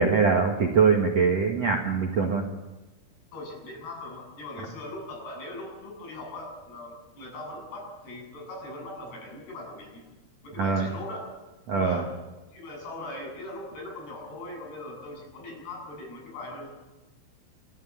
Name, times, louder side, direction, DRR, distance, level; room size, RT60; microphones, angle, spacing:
voice 1, 0.0-2.4 10.6-10.9 11.7-12.0, right 5 dB, 55° right, 2 dB, 2.1 m, -22 dB
voice 2, 3.3-10.0 10.4-11.3 11.7-12.1 12.5-16.7, left 1 dB, 65° left, -1 dB, 10.0 m, -40 dB
28.0 x 13.5 x 8.7 m, 1.1 s
omnidirectional pair, 5.2 m